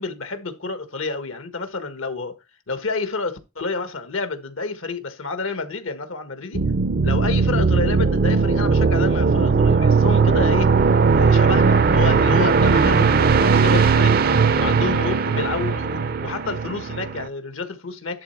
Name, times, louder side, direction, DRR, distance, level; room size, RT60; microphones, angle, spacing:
voice 1, 0.0-2.3 2.7-6.6 7.0-10.8 11.1-14.2 14.5-18.2, left 3 dB, 80° left, 1.5 m, -29 dB
sound 1, 6.5-17.3, right 5 dB, 45° right, 0.5 m, -18 dB
11.0 x 4.1 x 4.4 m
head